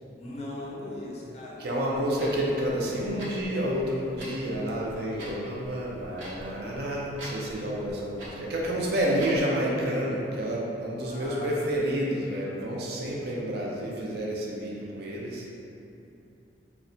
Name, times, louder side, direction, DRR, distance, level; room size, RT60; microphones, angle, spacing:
voice 1, 0.2-1.7 11.0-11.5, left 2 dB, 35° left, -4 dB, 0.4 m, -38 dB
voice 2, 1.6-15.5, equal, 60° right, -4 dB, 0.4 m, -29 dB
Clock, 1.9-9.5, equal, 90° right, 0.8 m, -45 dB
2.8 x 2.1 x 2.6 m, 2.8 s
head